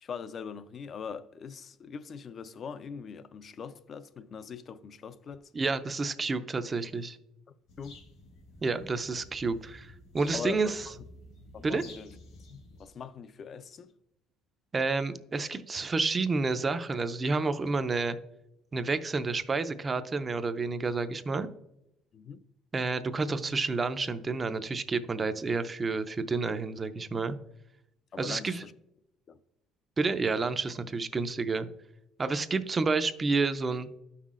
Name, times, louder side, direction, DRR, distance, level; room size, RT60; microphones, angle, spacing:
voice 1, 0.0-5.5 7.8-8.0 10.3-10.9 11.5-12.1 12.5-13.9 22.1-22.4 28.1-28.7 29.3-29.4, left 6 dB, 40° left, 0.4 m, -42 dB
voice 2, 5.5-7.2 8.6-10.9 11.6-11.8 14.7-18.2 18.7-21.5 22.7-27.4 28.2-28.6 30.0-31.7 32.2-34.0, right 4 dB, 25° right, 0.4 m, -30 dB
sound 1, 7.7-12.9, left 2 dB, 80° left, 2.3 m, -52 dB
12.5 x 5.6 x 2.4 m
cardioid pair, 130°, 0 cm